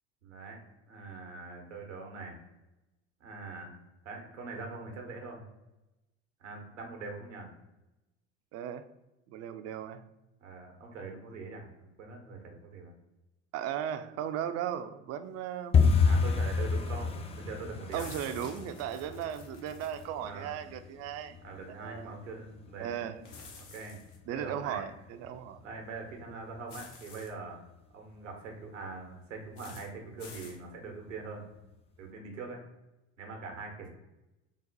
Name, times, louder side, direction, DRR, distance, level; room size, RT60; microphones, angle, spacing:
voice 1, 0.2-0.6 0.9-2.4 3.2-3.8 4.0-5.4 6.4-7.5 10.4-12.9 16.1-18.1 20.2-20.5 21.4-23.1 23.7-24.0 24.3-24.8 25.6-27.6 27.9-31.5 32.0-32.6 33.2-33.9, right 4 dB, 90° right, 2 dB, 1.0 m, -43 dB
voice 2, 8.5-8.9 9.3-10.0 13.5-15.7 17.9-21.4 21.7-22.1 22.8-23.2 24.3-25.6 26.3-26.4, right 10 dB, 45° right, 10 dB, 0.4 m, -36 dB
sound 1, 15.7-26.5 26.7-27.4 27.7-28.0 28.2-28.6 28.9-29.0 29.5-30.0 30.4-30.5 31.0-31.1, left 5 dB, 15° left, 0.4 m, -31 dB
sound 2, 17.9-20.1 23.2-24.2 26.7-27.3 29.6-29.9 30.2-30.6, left 4 dB, 75° left, 0.9 m, -49 dB
4.0 x 2.1 x 3.9 m, 0.97 s
hypercardioid pair, 80°, 36 cm